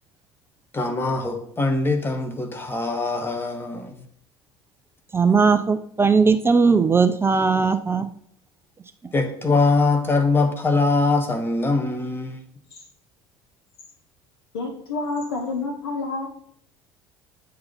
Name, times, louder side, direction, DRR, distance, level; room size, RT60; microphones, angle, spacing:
voice 1, 0.7-4.0 9.1-12.4, left 3 dB, 15° left, 4 dB, 1.2 m, -22 dB
voice 2, 5.1-8.1, right 5 dB, 20° right, 10 dB, 0.4 m, -18 dB
voice 3, 14.5-16.3, left 3 dB, 75° left, 3 dB, 1.3 m, -28 dB
8.1 x 2.9 x 5.4 m, 0.63 s
figure-of-eight pair, 65°, 13 cm